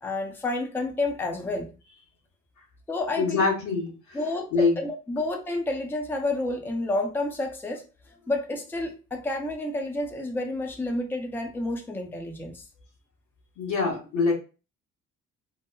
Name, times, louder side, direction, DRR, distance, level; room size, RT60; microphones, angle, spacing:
voice 1, 0.0-1.7 2.9-3.5 4.1-7.8 8.3-12.6, left 2 dB, 5° left, 3 dB, 0.5 m, -30 dB
voice 2, 3.2-4.2 4.5-4.8 13.6-14.3, left 4 dB, 85° left, -2 dB, 1.1 m, -24 dB
3.0 x 2.0 x 2.2 m, 0.32 s
cardioid pair, 90°, 30 cm